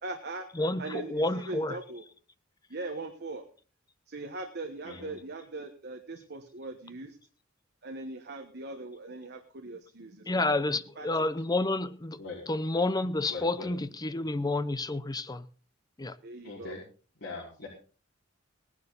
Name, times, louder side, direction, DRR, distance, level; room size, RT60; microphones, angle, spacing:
voice 1, 0.0-0.5 0.8-2.0 2.7-3.4 4.1-7.2 7.8-11.3 16.2-16.8, right 2 dB, 55° right, 1.3 m, -40 dB
voice 2, 1.1-1.8 10.3-12.2 12.5-15.4 16.0-16.2, left 2 dB, 20° left, 0.7 m, -29 dB
voice 3, 13.3-13.8 16.4-16.8 17.2-17.7, left 3 dB, 55° left, 4.8 m, -41 dB
18.0 x 11.0 x 4.0 m
head